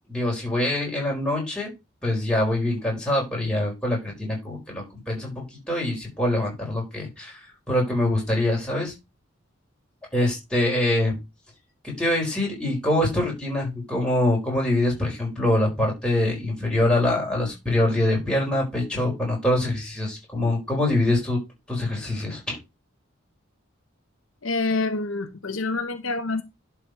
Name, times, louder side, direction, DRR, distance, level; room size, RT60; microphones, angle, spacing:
voice 1, 0.1-1.7 2.0-7.4 7.7-8.9 10.1-11.2 11.8-21.4 21.7-22.6, left 1 dB, 5° left, 4.7 m, -24 dB
voice 2, 24.4-26.4, left 3 dB, 75° left, 1.1 m, -27 dB
11.0 x 4.8 x 4.7 m
head